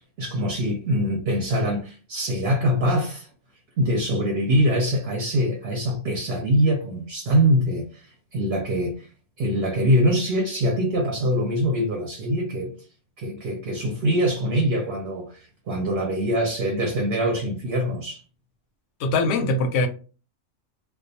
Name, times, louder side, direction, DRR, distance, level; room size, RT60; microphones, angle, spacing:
voice 1, 0.2-3.3 3.8-9.1 9.4-12.7 13.2-18.2, equal, 65° right, 0.8 m, -23 dB
voice 2, 19.0-19.9, left 2 dB, 80° left, 0.9 m, -22 dB
2.2 x 2.2 x 2.7 m
omnidirectional pair, 1.3 m